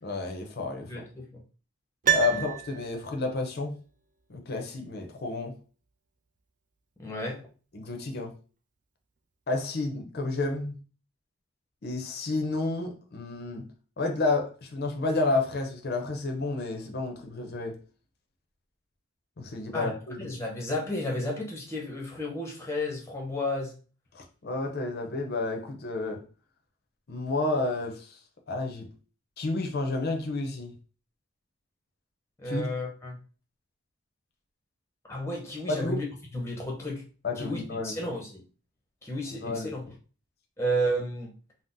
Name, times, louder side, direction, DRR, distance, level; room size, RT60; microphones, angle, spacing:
voice 1, 0.0-1.0 2.1-3.8 4.3-5.5 7.7-8.3 9.5-10.8 11.8-13.7 14.0-17.8 19.4-20.2 24.1-26.2 27.1-28.2 28.5-28.9 29.4-30.7 32.4-32.7 35.7-36.0 37.2-38.1 39.4-39.9, left 3 dB, 50° left, 0.6 m, -30 dB
voice 2, 0.8-1.4 2.3-2.4 7.0-7.4 19.7-19.9 20.2-23.8 32.4-33.2 35.1-36.0 36.3-37.0 37.4-38.4 39.0-39.8 40.6-41.3, equal, 15° left, 0.7 m, -32 dB
Piano, 2.0-3.3 3.6-3.7, right 10 dB, 35° right, 0.3 m, -28 dB
3.7 x 2.0 x 2.5 m
head